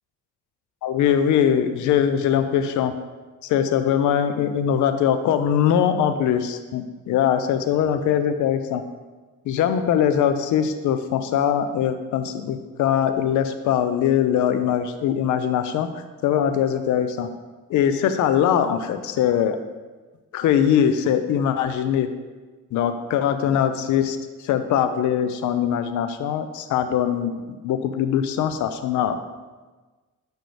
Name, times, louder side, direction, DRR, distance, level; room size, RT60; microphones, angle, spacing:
voice 1, 0.8-2.9 3.4-8.8 9.5-17.3 17.7-19.6 20.3-22.1 22.7-24.2 24.4-27.3 27.6-29.2, left 9 dB, 75° left, 9 dB, 0.5 m, -21 dB
8.2 x 6.1 x 3.3 m, 1.3 s
cardioid pair, 90°, 30 cm